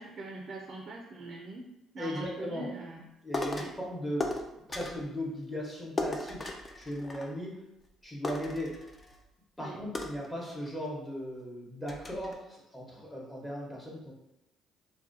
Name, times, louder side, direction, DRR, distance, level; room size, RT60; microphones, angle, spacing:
voice 1, 0.0-1.7 1.9-3.1 3.5-3.7 9.6-9.8, right 2 dB, 50° right, 0 dB, 0.4 m, -42 dB
voice 2, 2.0-2.7 3.2-6.4 6.8-7.6 8.0-8.8 9.6-14.1, equal, 15° left, -4 dB, 1.0 m, -37 dB
sound 1, 3.3-3.8 4.2-5.1 6.0-7.6 7.9-8.0 8.2-9.2 9.9-10.9 11.4-11.5 11.9-12.3, left 2 dB, 30° left, 0.4 m, -37 dB
2.3 x 2.1 x 2.6 m, 0.87 s
supercardioid pair, 65°, 0 cm